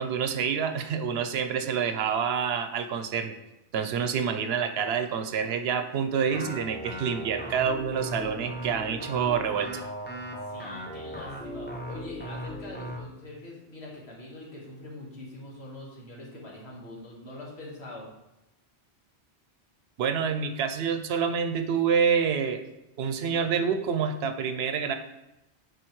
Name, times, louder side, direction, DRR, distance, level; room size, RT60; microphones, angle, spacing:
voice 1, 0.0-3.3 3.7-9.7 20.0-22.6 23.0-25.0, right 7 dB, 75° right, 8 dB, 0.8 m, -27 dB
sound 1, 6.3-13.0, equal, 15° left, 0.5 m, -37 dB
voice 2, 10.4-18.1, left 1 dB, 80° left, -3 dB, 1.8 m, -43 dB
7.7 x 4.9 x 3.1 m, 0.91 s
omnidirectional pair, 1.1 m